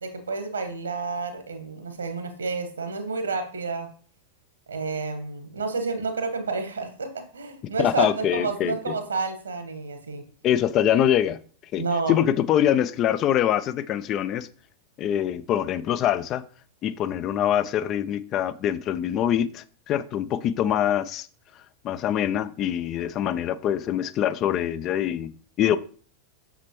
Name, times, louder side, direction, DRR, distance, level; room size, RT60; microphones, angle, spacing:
voice 1, 0.0-3.9 4.7-10.3 11.8-12.2, right 4 dB, 70° right, 1.4 m, -30 dB
voice 2, 7.8-8.9 10.4-11.4 11.7-14.5 15.0-16.4 16.8-21.3 21.8-25.8, left 10 dB, 35° left, 0.4 m, -24 dB
7.4 x 6.7 x 3.1 m
figure-of-eight pair, 90°, 0 cm